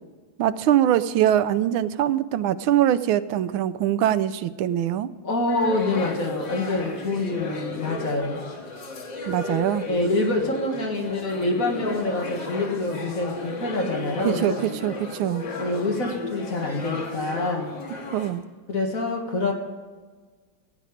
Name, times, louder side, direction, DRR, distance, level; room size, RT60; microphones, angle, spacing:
voice 1, 0.4-5.1 9.3-9.8 14.2-15.4 18.1-18.4, right 11 dB, 85° right, 12 dB, 1.4 m, -23 dB
voice 2, 5.2-8.4 9.9-14.6 15.6-17.7 18.7-19.5, left 2 dB, 45° left, 1 dB, 2.0 m, -26 dB
sound 1, 5.5-18.3, left 3 dB, 65° left, 2.4 m, -34 dB
17.0 x 9.1 x 5.1 m, 1.4 s
omnidirectional pair, 2.2 m